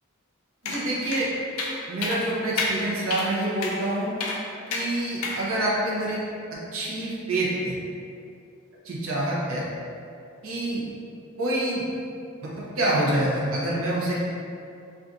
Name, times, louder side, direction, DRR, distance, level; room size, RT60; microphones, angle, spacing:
voice 1, 0.6-1.3 1.9-4.1 4.7-6.2 6.7-7.8 8.8-9.6 10.4-10.8 11.4-11.9 12.8-14.1, right 1 dB, 75° right, -6 dB, 0.6 m, -26 dB
sound 1, 0.7-0.8 1.1-1.2 1.6-1.7 2.0-2.2 2.6-2.7 3.1-3.3 3.6-3.8 4.2-4.4 4.7-4.9 5.2-5.4, left 3 dB, 90° left, 0.5 m, -28 dB
2.5 x 2.3 x 3.7 m, 2.5 s
head